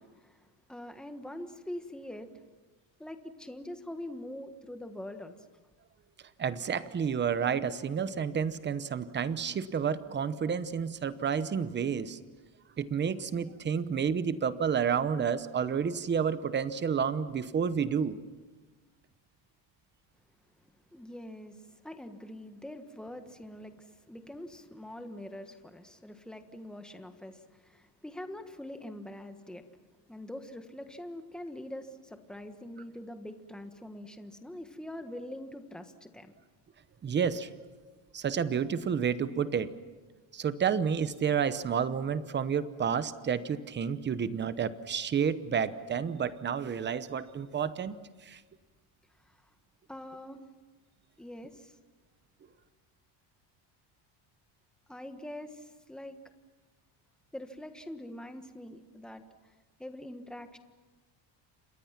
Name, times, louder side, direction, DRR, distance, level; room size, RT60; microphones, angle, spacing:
voice 1, 0.0-2.4 3.0-5.4 20.9-29.7 30.1-36.3 49.2-49.4 49.9-50.4 51.2-51.7 54.9-56.2 57.3-59.5 59.8-60.6, left 1 dB, ahead, 7 dB, 1.3 m, -44 dB
voice 2, 6.4-12.2 12.8-18.2 37.0-37.5 38.1-39.8 40.3-48.0 48.2-48.4, right 7 dB, 20° right, 13 dB, 0.9 m, -30 dB
30.0 x 26.5 x 5.9 m, 1.4 s
cardioid pair, 165°, 50 cm